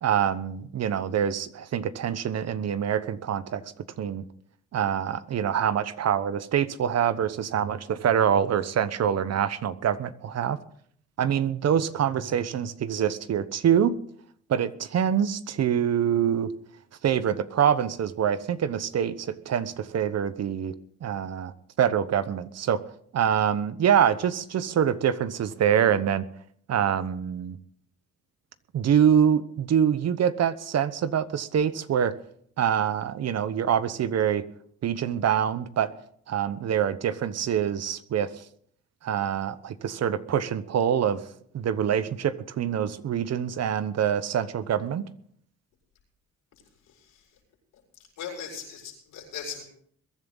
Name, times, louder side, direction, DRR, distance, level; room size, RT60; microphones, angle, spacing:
voice 1, 0.0-3.6 4.0-4.2 4.7-10.6 11.2-14.0 14.5-16.5 17.0-20.7 21.0-21.5 21.8-22.8 23.1-26.2 26.7-27.6 28.7-32.1 32.6-34.4 34.8-35.9 36.3-38.3 39.0-41.2 41.5-45.0, right 9 dB, 60° right, 14 dB, 1.0 m, -25 dB
voice 2, 46.9-47.3 48.2-49.6, left 7 dB, 85° left, -2 dB, 6.4 m, -39 dB
22.0 x 11.0 x 3.9 m, 0.62 s
cardioid pair, 90°, 30 cm